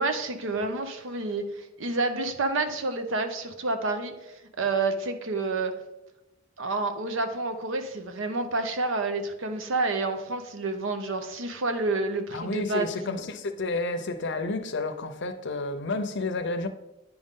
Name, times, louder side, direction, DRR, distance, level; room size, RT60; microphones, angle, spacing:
voice 1, 0.0-4.1 4.6-5.7 6.6-13.1, right 3 dB, 65° right, 0.8 m, -29 dB
voice 2, 12.3-16.7, left 3 dB, 60° left, 0.7 m, -30 dB
9.3 x 5.3 x 3.7 m
head